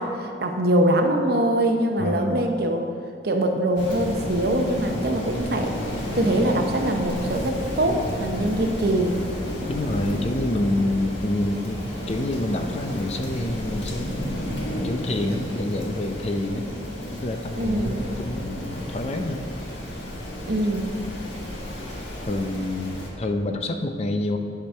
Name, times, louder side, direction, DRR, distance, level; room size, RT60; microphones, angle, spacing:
voice 1, 0.0-2.8 3.2-5.7 6.1-9.1 17.6-18.1 20.5-20.9, right 1 dB, 60° right, 4 dB, 0.8 m, -23 dB
voice 2, 2.0-2.5 9.7-11.8 12.1-14.1 14.8-16.6 17.2-19.5 22.2-24.4, left 1 dB, 35° left, 6 dB, 0.5 m, -27 dB
Rain, 3.8-23.1, left 1 dB, 80° left, 1.7 m, -32 dB
10.5 x 5.0 x 5.5 m, 2.4 s
head